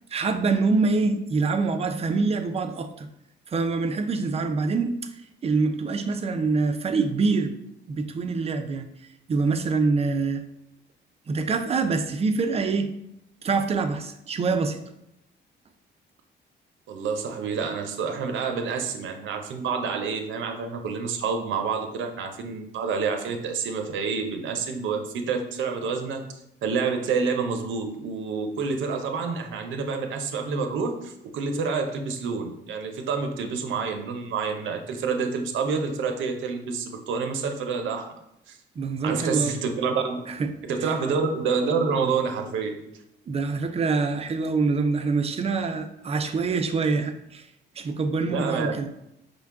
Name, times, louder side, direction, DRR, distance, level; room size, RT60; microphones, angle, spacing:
voice 1, 0.1-3.1 3.5-5.0 5.4-7.6 7.9-8.9 9.3-10.4 11.3-12.9 13.4-14.8 38.8-39.5 40.3-40.5 40.8-40.9 43.3-47.5 47.8-48.9, right 4 dB, 30° right, 7 dB, 0.4 m, -25 dB
voice 2, 16.9-26.2 26.6-38.1 38.5-38.6 39.0-40.2 40.6-42.8 48.3-48.7, right 5 dB, 75° right, 5 dB, 0.6 m, -28 dB
5.1 x 2.2 x 3.6 m, 0.83 s
cardioid pair, 90°, 20 cm